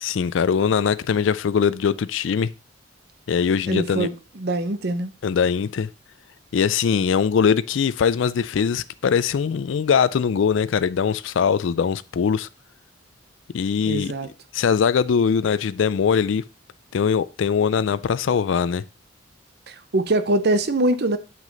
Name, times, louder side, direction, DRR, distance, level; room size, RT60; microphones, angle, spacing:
voice 1, 0.0-2.5 3.3-4.1 5.2-5.9 6.5-12.5 13.5-14.1 14.5-16.4 16.9-18.8, left 6 dB, 75° left, 0.4 m, -21 dB
voice 2, 3.7-5.1 13.8-14.3 19.7-21.2, right 2 dB, 55° right, 0.8 m, -23 dB
7.4 x 6.1 x 3.9 m
head